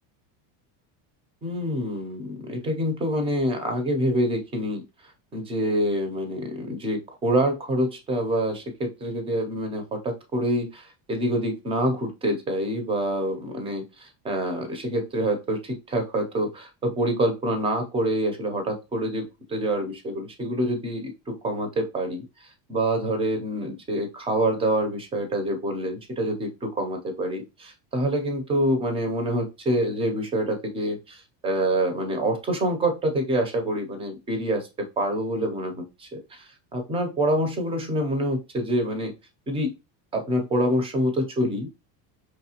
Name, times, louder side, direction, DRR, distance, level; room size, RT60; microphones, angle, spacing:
voice 1, 1.4-4.8 5.3-22.2 22.7-34.7 35.0-39.1 39.5-39.7 40.1-41.7, right 1 dB, 15° right, 5 dB, 0.4 m, -26 dB
4.8 x 3.0 x 2.8 m, 0.27 s
cardioid pair, 175°, 45 cm